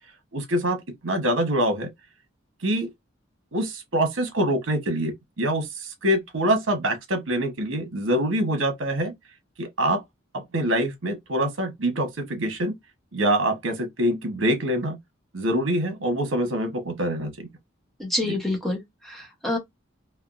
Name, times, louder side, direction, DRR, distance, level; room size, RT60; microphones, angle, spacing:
voice 1, 0.3-1.9 2.6-2.9 3.5-9.1 9.6-10.0 10.3-12.8 13.1-15.0 15.3-17.5 18.2-18.3, right 1 dB, 75° right, 1.0 m, -25 dB
voice 2, 18.0-19.6, left 1 dB, ahead, 1.0 m, -28 dB
3.4 x 2.1 x 2.5 m
head